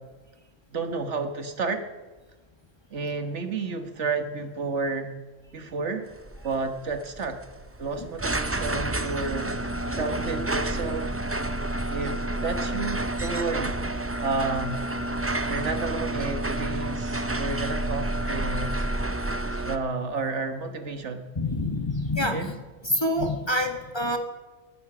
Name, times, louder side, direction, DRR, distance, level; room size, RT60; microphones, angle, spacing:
voice 1, 0.7-1.8 2.9-5.1 5.5-6.1 6.4-7.4 7.8-11.2 11.9-13.8 14.2-14.9 15.5-18.8 19.6-21.2 22.3-22.5, right 4 dB, 65° right, 7 dB, 1.8 m, -31 dB
sound 1, 6.1-19.8, right 1 dB, 15° right, 0.5 m, -29 dB
voice 2, 21.3-22.6 22.8-24.2, left 1 dB, 20° left, 5 dB, 1.4 m, -26 dB
19.0 x 12.0 x 6.1 m, 1.3 s
omnidirectional pair, 1.3 m